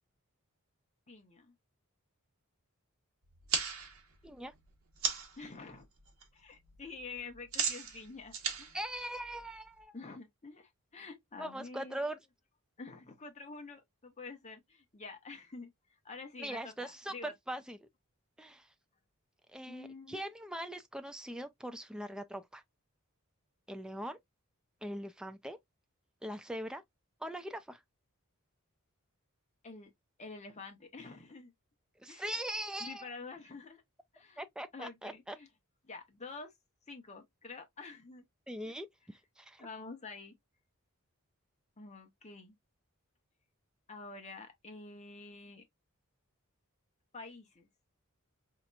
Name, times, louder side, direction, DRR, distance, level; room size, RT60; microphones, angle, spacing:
voice 1, 1.1-1.5 5.4-5.9 6.3-8.8 9.9-12.0 12.8-15.7 16.0-17.3 19.7-20.2 29.6-29.9 30.2-31.5 32.1-32.2 32.8-33.8 34.1-34.4 34.7-35.5 35.8-36.5 36.9-38.2 39.6-40.3 41.8-42.5 43.9-45.6 47.1-47.7, left 3 dB, 30° left, 0.9 m, -48 dB
sound 1, 3.3-5.4 5.8-6.3 6.5-9.8, right 6 dB, 65° right, 1.1 m, -37 dB
voice 2, 8.7-9.9 11.4-12.2 16.4-17.8 18.4-18.7 19.5-22.6 23.7-24.2 24.8-25.6 26.2-26.8 27.2-27.8 32.0-33.1 34.4-35.4 38.5-39.7, right 1 dB, 5° right, 0.3 m, -41 dB
4.1 x 2.9 x 2.2 m
head